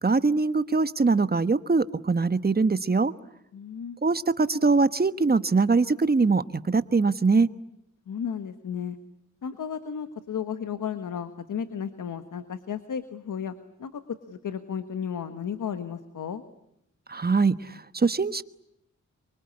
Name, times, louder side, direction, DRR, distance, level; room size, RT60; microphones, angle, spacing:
voice 1, 0.0-3.1 4.0-7.5 17.1-18.4, right 4 dB, 30° right, 13 dB, 1.2 m, -22 dB
voice 2, 3.5-4.0 8.1-9.0 9.4-13.5 13.8-14.0 14.3-16.4, left 7 dB, 90° left, 10 dB, 1.5 m, -33 dB
24.5 x 24.5 x 9.9 m, 0.79 s
cardioid pair, 70°, 30 cm